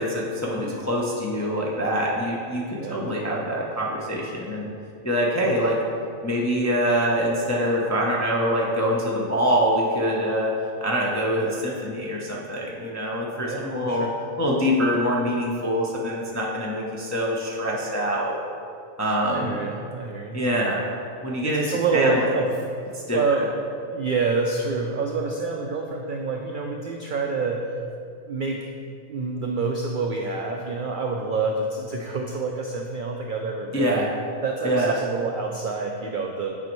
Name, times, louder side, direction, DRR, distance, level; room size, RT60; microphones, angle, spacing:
voice 1, 0.0-4.7 5.0-5.8 6.2-10.5 10.8-14.1 14.4-18.4 19.0-19.7 20.3-20.8 21.2-22.3 22.9-23.2 33.7-34.1 34.6-34.9, equal, 30° left, -4 dB, 0.3 m, -24 dB
voice 2, 2.8-3.1 11.3-11.6 13.4-14.1 19.3-20.4 21.4-22.5 22.9-23.5 23.9-27.8 28.3-28.6 29.1-34.0 34.4-36.6, right 4 dB, 75° right, 2 dB, 0.4 m, -27 dB
8.3 x 5.1 x 3.1 m, 2.4 s
omnidirectional pair, 1.4 m